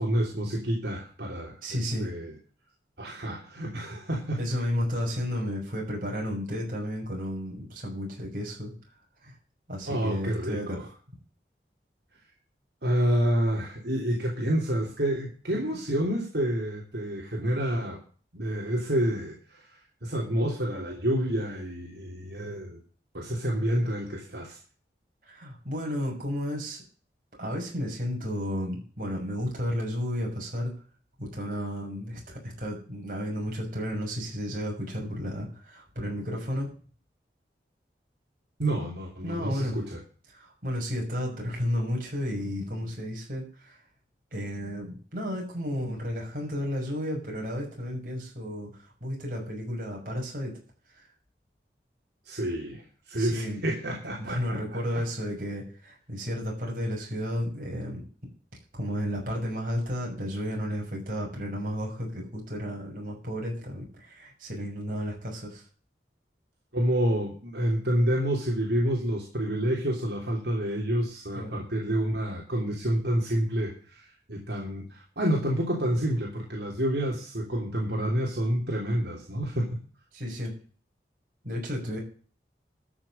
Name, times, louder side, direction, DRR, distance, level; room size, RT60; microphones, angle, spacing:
voice 1, 0.0-2.3 3.0-4.6 9.8-10.9 12.8-18.0 18.3-22.8 23.1-24.6 38.6-40.0 52.2-55.0 66.7-79.7, equal, 75° right, -2 dB, 3.2 m, -29 dB
voice 2, 1.6-2.1 4.4-8.7 9.2-9.3 9.7-10.9 25.3-26.8 27.4-30.8 31.2-36.7 39.2-39.8 40.3-43.8 44.3-50.5 51.0-51.1 53.1-53.6 54.2-58.0 58.7-65.6 71.3-71.6 80.1-80.5 81.4-82.0, equal, 50° right, -1 dB, 6.2 m, -32 dB
13.5 x 6.4 x 7.0 m, 0.40 s
head